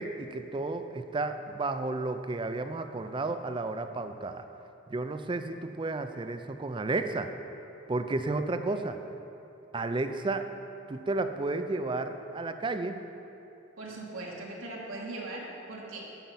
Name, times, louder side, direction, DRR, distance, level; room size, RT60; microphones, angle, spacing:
voice 1, 0.0-4.4 4.9-7.3 7.9-9.0 9.7-10.5 10.9-13.0, right 2 dB, 25° right, 8 dB, 0.4 m, -32 dB
voice 2, 13.8-16.1, right 2 dB, 90° right, -3 dB, 1.8 m, -39 dB
12.5 x 5.8 x 5.8 m, 2.9 s
head